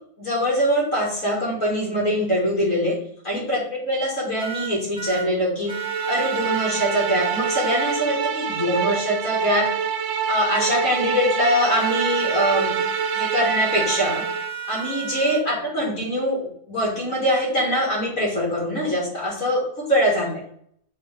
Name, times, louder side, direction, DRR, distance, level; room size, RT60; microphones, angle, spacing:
voice 1, 0.2-3.0 3.2-9.7 10.3-12.8 13.1-14.2 14.7-20.4, equal, 60° left, -5 dB, 2.3 m, -23 dB
sound 1, 4.4-5.3 5.7-8.0 11.7-15.4, right 9 dB, 5° right, 0.8 m, -33 dB
sound 2, 5.7-14.5, right 6 dB, 70° right, 0.7 m, -26 dB
8.0 x 3.5 x 3.4 m, 0.67 s
omnidirectional pair, 1.6 m